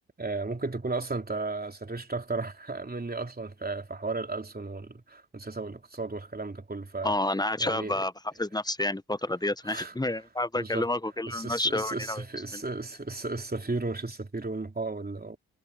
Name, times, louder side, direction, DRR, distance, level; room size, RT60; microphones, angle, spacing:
voice 1, 0.2-7.1 7.6-8.0 9.6-9.9 10.6-10.9 11.3-15.4, right 3 dB, 25° right, 3.3 m, -34 dB
voice 2, 7.0-8.1 8.4-12.2 12.5-12.6, left 2 dB, 10° left, 1.3 m, -29 dB
hypercardioid pair, 40°, 40 cm